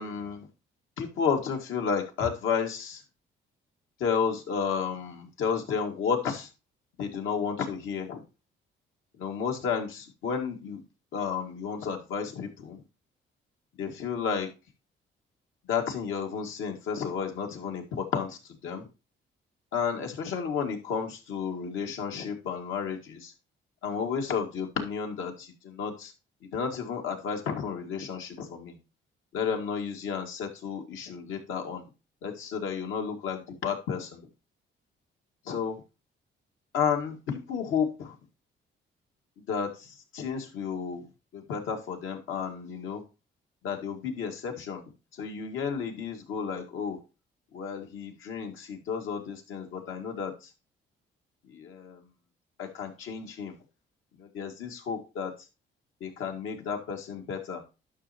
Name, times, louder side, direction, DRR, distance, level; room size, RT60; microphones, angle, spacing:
voice 1, 0.0-0.5 1.0-3.0 4.0-6.5 7.0-8.2 9.2-10.8 11.1-12.8 13.8-14.5 15.6-18.9 19.7-23.3 23.8-26.1 26.5-28.8 29.3-31.8 32.2-34.2 35.4-35.8 36.7-38.2 39.5-43.0 43.6-44.8 45.1-47.0 47.5-50.5 51.4-52.1 52.6-53.6 54.1-55.3 56.0-57.6, left 6 dB, 85° left, 3 dB, 1.9 m, -32 dB
11.0 x 6.4 x 2.8 m, 0.29 s
cardioid pair, 90°, 20 cm